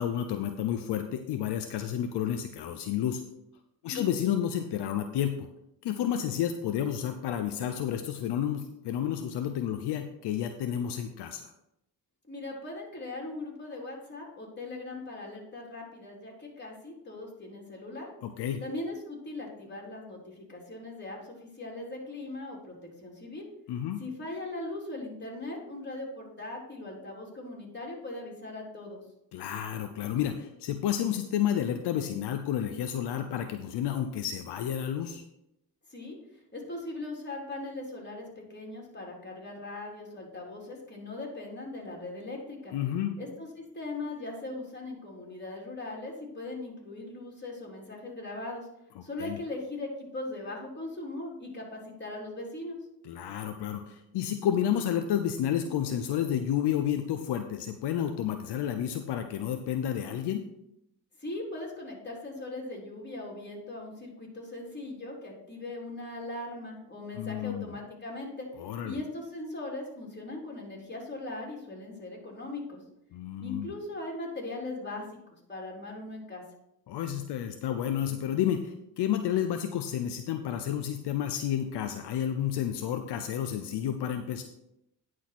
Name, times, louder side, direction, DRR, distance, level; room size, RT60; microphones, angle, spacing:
voice 1, 0.0-3.2 3.8-5.5 5.8-11.5 18.2-18.6 23.7-24.0 29.3-35.2 42.7-43.1 49.2-49.4 53.0-60.4 67.1-67.7 68.6-69.0 73.1-73.7 76.9-84.4, left 10 dB, 75° left, 7 dB, 0.8 m, -31 dB
voice 2, 12.3-18.1 18.6-23.5 24.0-29.0 35.9-36.2 36.5-42.7 43.2-48.7 49.0-52.8 61.2-68.5 68.8-72.8 73.4-76.4, left 2 dB, 25° left, -1 dB, 3.7 m, -39 dB
10.0 x 4.8 x 6.0 m, 0.84 s
supercardioid pair, 65°, 41 cm